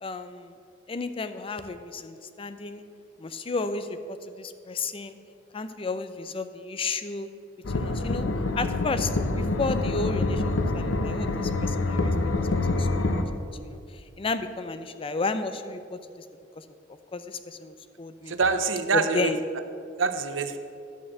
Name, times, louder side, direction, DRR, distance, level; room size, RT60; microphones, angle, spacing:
voice 1, 0.0-0.5 0.9-2.8 3.2-5.2 5.5-7.3 7.7-8.3 8.6-12.3 12.8-13.8 14.2-16.0 16.6-16.7 17.1-18.3 18.9-19.4, left 3 dB, 30° left, 10 dB, 0.4 m, -32 dB
sound 1, 7.6-13.2, left 2 dB, 85° left, 0.7 m, -26 dB
voice 2, 18.3-19.6 20.0-20.6, right 4 dB, 80° right, 10 dB, 0.6 m, -26 dB
11.0 x 4.5 x 7.5 m, 2.4 s
head